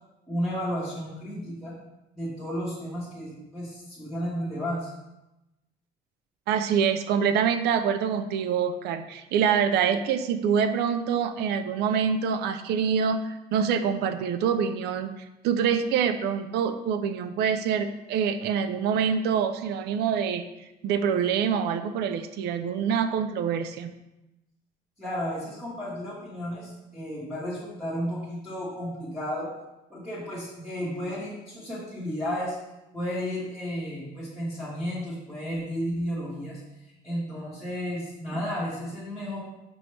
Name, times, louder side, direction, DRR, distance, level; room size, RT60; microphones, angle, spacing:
voice 1, 0.3-1.7 2.1-4.9 25.0-29.5 29.9-32.5 32.9-36.6 37.0-39.4, equal, ahead, -11 dB, 1.2 m, -33 dB
voice 2, 6.5-15.1 15.4-20.5 20.8-23.9, right 7 dB, 80° right, 10 dB, 0.4 m, -25 dB
5.3 x 3.0 x 3.2 m, 0.96 s
cardioid pair, 110°, 17 cm